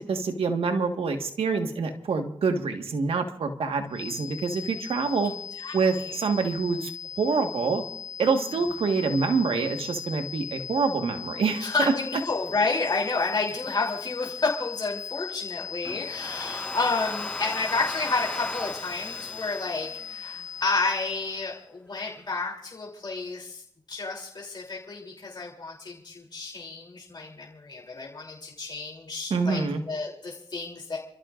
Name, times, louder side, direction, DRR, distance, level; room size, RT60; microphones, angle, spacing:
voice 1, 0.0-5.3 5.7-6.9 7.2-7.8 8.2-11.9 29.3-29.8, right 4 dB, 90° right, 5 dB, 1.6 m, -26 dB
sound 1, 3.9-21.7, left 7 dB, 35° left, 0.7 m, -39 dB
voice 2, 11.6-23.6 23.9-29.6 29.9-31.0, left 3 dB, 50° left, -3 dB, 3.2 m, -30 dB
Domestic sounds home sounds, 15.8-20.8, left 1 dB, 10° left, 3.8 m, -38 dB
29.5 x 14.5 x 2.5 m, 0.69 s
cardioid pair, 50°, 9 cm